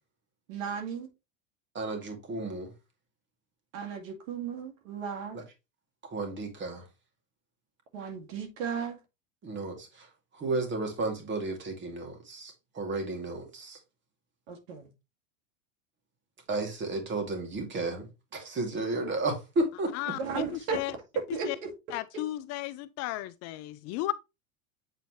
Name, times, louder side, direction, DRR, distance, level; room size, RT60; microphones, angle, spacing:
voice 1, 0.5-1.1 3.7-5.4 7.9-9.0 14.5-14.9 20.2-21.0 21.3-21.7 22.1-22.2, right 6 dB, 75° right, 2.3 m, -35 dB
voice 2, 1.7-2.7 6.1-6.8 9.4-10.1 10.3-13.8 16.5-18.1 18.3-20.1, right 2 dB, 30° right, 2.5 m, -33 dB
voice 3, 19.9-20.9 21.4-21.6 21.9-24.1, left 16 dB, 40° left, 0.5 m, -34 dB
8.0 x 4.1 x 3.1 m
supercardioid pair, 120°, 40 cm